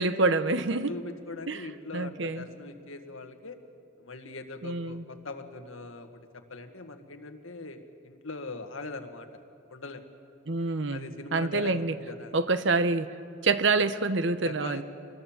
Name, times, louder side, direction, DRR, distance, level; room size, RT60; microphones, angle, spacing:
voice 1, 0.0-0.9 1.5-1.7 1.9-2.5 4.6-5.0 10.5-11.0 11.3-11.9 12.3-13.1 13.4-14.8, right 3 dB, 60° right, 12 dB, 0.9 m, -26 dB
voice 2, 0.9-3.6 4.0-6.2 6.5-9.4 9.7-10.0 10.9-12.4 14.4-14.8, left 3 dB, 85° left, 6 dB, 1.6 m, -41 dB
25.5 x 20.5 x 7.4 m, 2.5 s
head